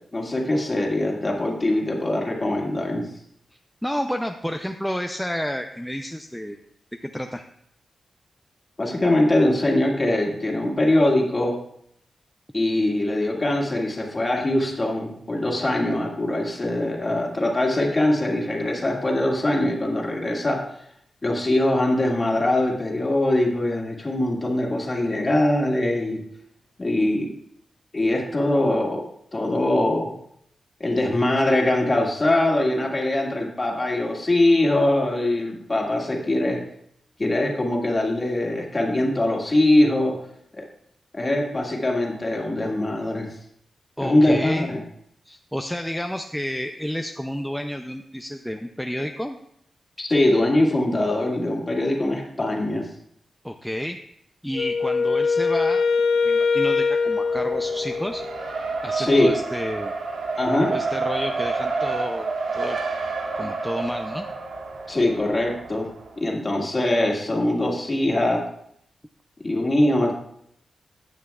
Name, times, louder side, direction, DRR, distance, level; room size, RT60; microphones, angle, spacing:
voice 1, 0.1-3.1 8.8-11.6 12.5-20.7 21.2-26.2 26.8-27.3 27.9-29.1 29.3-30.1 30.8-36.6 37.2-40.1 40.5-40.6 41.1-43.3 44.0-44.8 50.0-52.9 59.0-59.4 60.4-60.7 64.9-65.9 66.2-68.5 69.4-70.1, left 1 dB, 25° left, -1 dB, 2.0 m, -22 dB
voice 2, 3.8-6.6 7.0-7.4 44.0-44.7 45.3-49.4 53.4-54.0 54.4-55.8 56.2-58.2 58.8-59.9 60.7-62.8 63.4-64.3, equal, ahead, 5 dB, 0.4 m, -30 dB
Wind instrument woodwind instrument, 54.5-58.4, left 4 dB, 65° left, 0.5 m, -22 dB
Race car auto racing, 57.1-66.2, right 3 dB, 85° right, 1.4 m, -29 dB
15.0 x 9.1 x 2.3 m, 0.72 s
wide cardioid pair, 125°, 0 cm